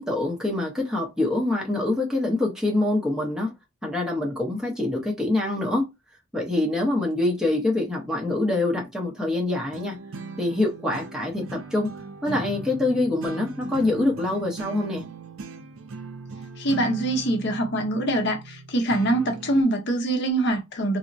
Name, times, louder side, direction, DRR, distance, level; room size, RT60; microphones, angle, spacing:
voice 1, 0.0-3.5 3.8-5.9 6.3-10.0 10.4-11.9 12.2-15.0, left 2 dB, 5° right, 0.7 m, -25 dB
sound 1, 9.7-19.6, right 4 dB, 70° right, 0.5 m, -39 dB
voice 2, 16.6-21.0, right 1 dB, 50° left, 0.7 m, -24 dB
3.7 x 2.0 x 2.5 m
head